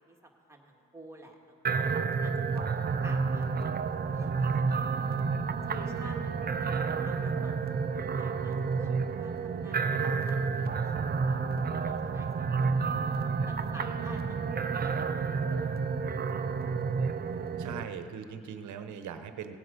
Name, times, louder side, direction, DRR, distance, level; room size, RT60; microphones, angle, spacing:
voice 1, 0.0-1.9 2.2-3.5 4.0-5.2 5.7-10.7 11.0-11.4 11.8-12.8 13.4-15.8, right 2 dB, 10° right, 0 dB, 1.7 m, -50 dB
sound 1, 1.6-17.8, right 5 dB, 30° right, 0.6 m, -30 dB
voice 2, 17.6-19.6, right 7 dB, 70° right, 9 dB, 1.0 m, -40 dB
17.0 x 8.0 x 5.2 m, 2.4 s
cardioid pair, 90°, 30 cm